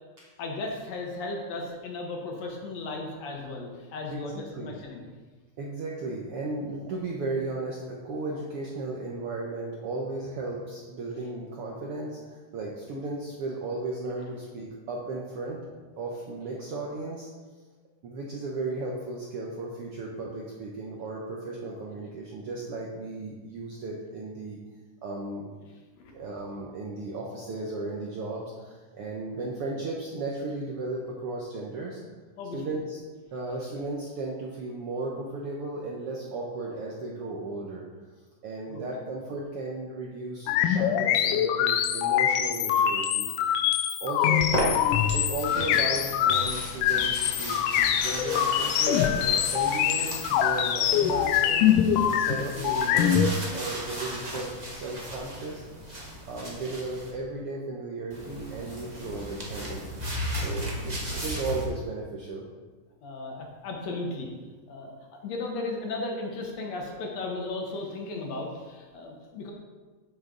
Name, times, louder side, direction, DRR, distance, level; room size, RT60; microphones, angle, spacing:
voice 1, 0.4-5.1 26.0-26.1 32.4-32.6 38.7-38.8 44.2-44.3 63.0-64.3 64.7-69.5, left 2 dB, 65° left, 1 dB, 2.1 m, -35 dB
voice 2, 4.1-4.7 5.6-15.7 16.0-17.3 18.0-24.6 25.0-25.5 26.1-32.0 32.5-33.0 33.3-37.9 38.4-43.6 44.0-44.4 45.1-51.7 52.0-55.6 56.2-59.8 60.3-62.4, right 2 dB, 70° right, -2 dB, 1.4 m, -35 dB
sound 1, 40.5-53.3, left 10 dB, 85° left, 2.1 m, -24 dB
sound 2, 44.3-57.1 58.1-61.7, equal, 30° right, 0.7 m, -35 dB
10.0 x 6.4 x 3.8 m, 1.4 s
omnidirectional pair, 3.6 m